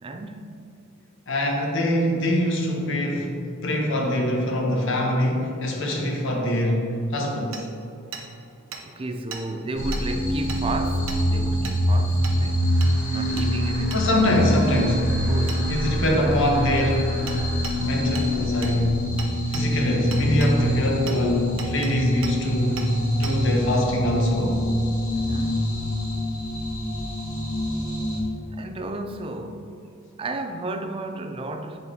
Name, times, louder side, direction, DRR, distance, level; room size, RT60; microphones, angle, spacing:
voice 1, 0.0-0.7 8.8-14.5 15.3-15.8 25.2-25.8 28.5-29.8 30.2-31.8, right 2 dB, 25° right, 0.4 m, -33 dB
voice 2, 1.3-3.3 3.6-6.9 7.1-7.7 13.9-15.3 15.7-17.2 17.8-19.0 19.5-22.9 23.2-24.6, left 1 dB, 65° left, 1.0 m, -23 dB
Hammer, 7.5-7.6 8.1-8.3 8.7-8.8 9.3-9.4 9.9-10.0 10.5-10.6 11.1-11.2 11.6-11.8 12.2-12.4 12.8-12.9 13.4-13.5 13.9-14.0 15.5-15.6 17.3-17.4 17.6-17.8 18.2-18.3 18.6-18.8 19.2-19.7 20.1-20.5 21.1-21.2 21.6-21.9 22.2-22.4 22.8-22.9 23.2-23.4, right 6 dB, 75° right, 0.9 m, -36 dB
sound 1, 9.7-28.2, equal, 40° left, 1.4 m, -25 dB
sound 2, 11.6-18.6, right 1 dB, 10° right, 1.2 m, -45 dB
10.5 x 4.0 x 2.9 m
head